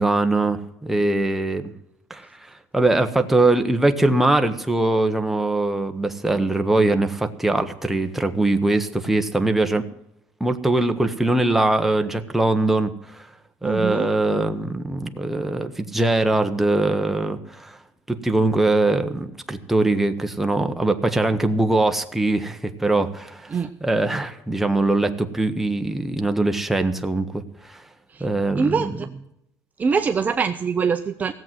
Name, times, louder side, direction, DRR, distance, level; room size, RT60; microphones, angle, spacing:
voice 1, 0.0-1.7 2.1-9.8 10.4-13.3 13.6-17.8 18.1-27.8 28.2-29.0, right 2 dB, 5° right, 6 dB, 1.0 m, -22 dB
voice 2, 13.6-14.1 23.5-23.7 28.5-28.9 29.8-31.3, right 5 dB, 25° right, 7 dB, 0.6 m, -23 dB
17.0 x 7.8 x 7.5 m, 0.79 s
cardioid pair, 145°, 7 cm